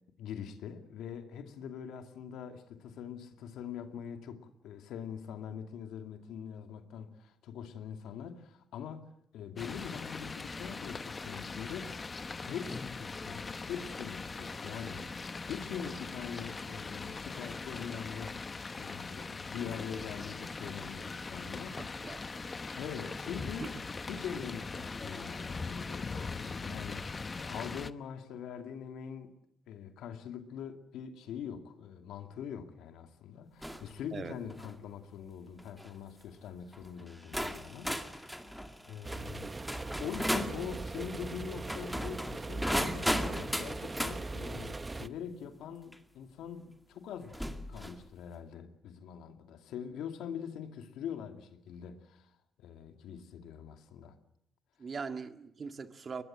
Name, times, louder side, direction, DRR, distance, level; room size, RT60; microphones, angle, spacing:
voice 1, 0.0-12.0 12.4-15.1 15.4-18.4 18.8-22.0 22.8-23.7 24.1-29.3 29.7-38.5 38.9-39.5 40.0-47.4 47.7-52.3 52.6-54.2, left 8 dB, 85° left, 2.4 m, -43 dB
sound 1, 9.6-27.9, left 4 dB, 30° left, 0.9 m, -41 dB
voice 2, 21.8-22.3 23.6-23.7 34.1-34.3 54.8-56.2, right 5 dB, 40° right, 1.9 m, -41 dB
sound 2, 33.6-33.9 34.4-34.8 35.6-35.9 36.7-36.8 37.3-40.6 41.6-44.2 45.9-46.0 47.3-48.0, equal, ahead, 2.3 m, -35 dB
sound 3, 39.0-45.1, right 2 dB, 20° right, 1.0 m, -40 dB
22.0 x 21.0 x 7.4 m
cardioid pair, 90°, 0 cm